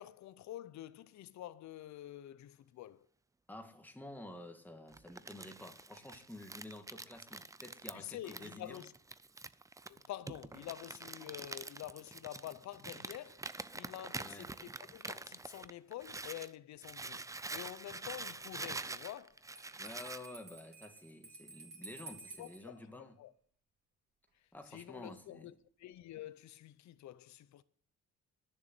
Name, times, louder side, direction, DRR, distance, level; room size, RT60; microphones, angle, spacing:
voice 1, 0.0-3.1 7.9-8.9 9.9-13.5 13.7-17.3 17.5-19.4 22.4-23.3 24.7-25.5 25.8-27.6, left 13 dB, 65° left, 0.7 m, -48 dB
voice 2, 3.5-8.8 14.2-14.5 19.8-23.2 24.5-25.5, left 1 dB, 5° left, 1.5 m, -50 dB
Crumpling crinkling, 4.9-16.5 16.8-20.3, right 3 dB, 10° right, 0.4 m, -46 dB
Bell, 19.5-22.6, right 3 dB, 35° right, 3.1 m, -53 dB
10.5 x 6.8 x 8.2 m
cardioid pair, 90°, 30 cm